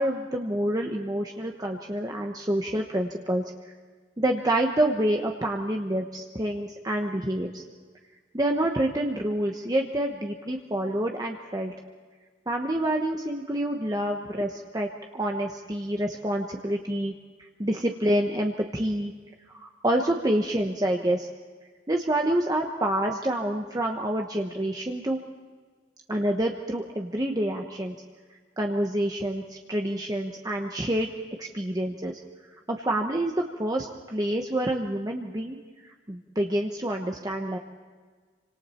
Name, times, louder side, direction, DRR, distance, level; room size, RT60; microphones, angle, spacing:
voice 1, 0.0-3.4 4.2-7.6 8.3-11.7 12.5-17.1 17.6-19.1 19.6-21.3 21.9-25.2 26.1-27.9 28.6-31.1 31.4-32.2 32.7-33.3 33.6-35.6 36.1-37.6, right 1 dB, 20° right, 1 dB, 1.1 m, -27 dB
27.5 x 25.5 x 4.4 m, 1.5 s
head